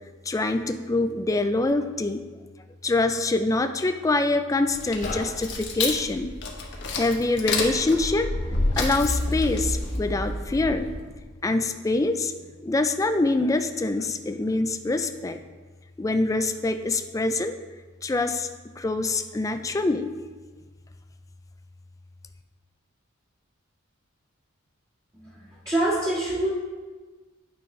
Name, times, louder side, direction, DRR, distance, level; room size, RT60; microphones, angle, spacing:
voice 1, 0.3-2.3 2.8-6.3 6.9-8.3 8.8-10.9 11.4-12.3 12.6-15.4 16.0-17.6 18.0-18.5 18.8-20.1, left 2 dB, 15° left, 8 dB, 0.3 m, -25 dB
sound 1, 4.7-11.2, left 2 dB, 60° left, 1.1 m, -29 dB
sound 2, 5.0-6.5, left 2 dB, 35° left, 0.9 m, -38 dB
voice 2, 25.2-26.5, right 1 dB, 20° right, -11 dB, 1.5 m, -26 dB
9.2 x 5.6 x 3.2 m, 1.3 s
head